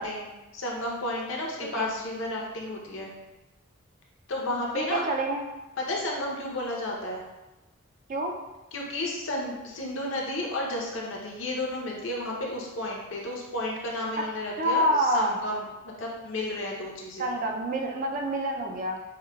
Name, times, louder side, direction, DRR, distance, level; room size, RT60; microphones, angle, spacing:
voice 1, 0.0-3.1 4.3-5.0 5.8-7.2 8.7-17.3, left 1 dB, 60° left, -2 dB, 0.6 m, -32 dB
voice 2, 1.6-1.9 4.7-5.5 8.1-8.3 14.2-14.3 14.6-15.4 17.2-19.0, right 1 dB, 40° right, 2 dB, 0.3 m, -27 dB
4.7 x 2.2 x 2.2 m, 1.1 s
head